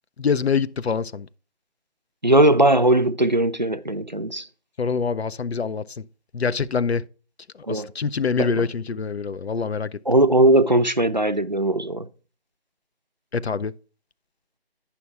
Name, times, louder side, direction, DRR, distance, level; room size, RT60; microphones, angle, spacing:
voice 1, 0.2-1.3 4.8-6.0 6.3-7.0 7.7-10.0 13.3-13.7, left 5 dB, 85° left, 0.6 m, -25 dB
voice 2, 2.2-4.5 7.6-7.9 8.4-8.7 10.1-12.1, right 1 dB, 45° right, 0.5 m, -19 dB
9.9 x 5.8 x 4.6 m
figure-of-eight pair, 180°, 31 cm